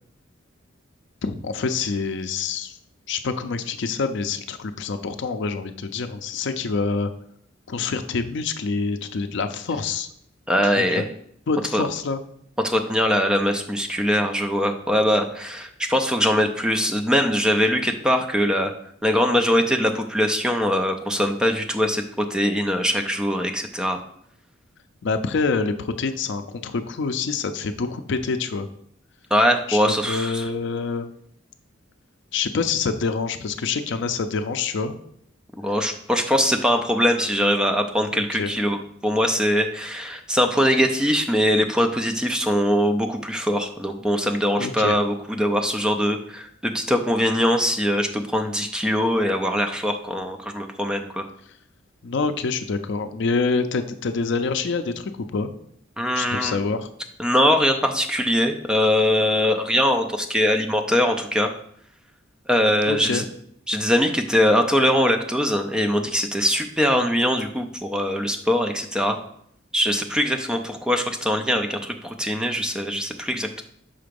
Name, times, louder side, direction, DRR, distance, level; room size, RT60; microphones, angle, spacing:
voice 1, 1.2-2.8 3.1-7.1 7.7-10.1 10.8-11.0 11.5-12.2 25.0-28.7 29.7-31.1 32.3-35.0 38.1-38.5 44.6-45.0 52.0-55.5 56.1-56.9 62.9-63.2, left 4 dB, 65° left, 9 dB, 0.5 m, -26 dB
voice 2, 10.5-11.1 11.7-11.8 12.6-18.7 19.0-24.0 29.3-30.5 35.6-51.3 56.0-56.6 57.2-61.5 62.5-63.3 63.7-69.2 69.7-73.6, equal, 5° right, 5 dB, 0.4 m, -22 dB
5.7 x 3.8 x 5.2 m, 0.68 s
head